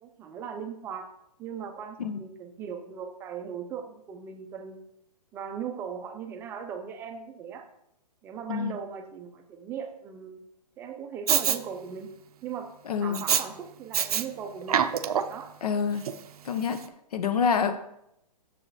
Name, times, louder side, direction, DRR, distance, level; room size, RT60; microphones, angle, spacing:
voice 1, 0.0-1.1 1.4-4.8 5.3-7.7 8.2-10.4 10.8-12.1 12.4-12.7 13.0-14.8 15.3-15.5, right 7 dB, 10° right, 6 dB, 0.5 m, -38 dB
Respiratory sounds, 11.3-11.6 13.1-13.4 13.9-14.2 14.6-15.4 16.0-16.1, right 9 dB, 65° right, 0.6 m, -25 dB
voice 2, 12.9-13.2 15.6-16.1 16.4-16.8 17.1-17.8, left 6 dB, 65° left, 9 dB, 1.1 m, -27 dB
7.2 x 6.9 x 4.1 m, 0.78 s
hypercardioid pair, 155°, 21 cm